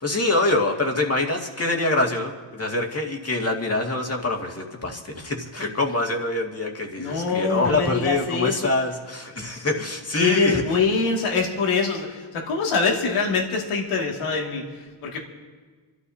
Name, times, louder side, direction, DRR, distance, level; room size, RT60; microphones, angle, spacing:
voice 1, 0.0-2.3 2.6-10.6, left 2 dB, 30° left, 1 dB, 2.2 m, -25 dB
voice 2, 7.0-8.7 10.1-15.2, left 4 dB, 85° left, -1 dB, 2.5 m, -24 dB
28.5 x 13.0 x 2.8 m, 1.4 s
cardioid pair, 75°, 50 cm